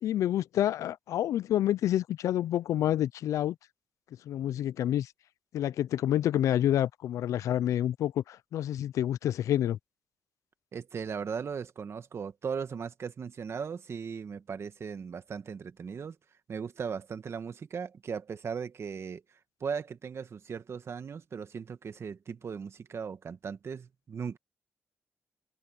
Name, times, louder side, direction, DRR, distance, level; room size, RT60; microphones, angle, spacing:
voice 1, 0.0-3.6 4.3-5.1 5.5-9.8, left 12 dB, 80° left, 0.4 m, -28 dB
voice 2, 10.7-16.2 16.5-19.2 19.6-24.4, right 6 dB, 55° right, 1.7 m, -37 dB
cardioid pair, 60°, 5 cm